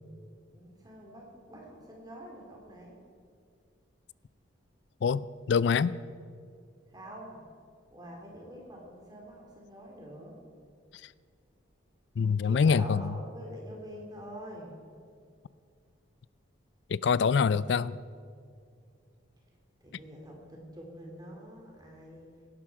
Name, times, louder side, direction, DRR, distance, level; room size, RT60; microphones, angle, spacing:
voice 1, 0.5-3.0 6.9-7.4 7.9-10.4 12.4-14.7 19.8-22.3, equal, 20° right, 3.0 m, -46 dB
voice 2, 5.0-6.0 12.2-13.1 16.9-18.0, left 5 dB, 60° left, 0.3 m, -25 dB
17.5 x 12.0 x 4.8 m
head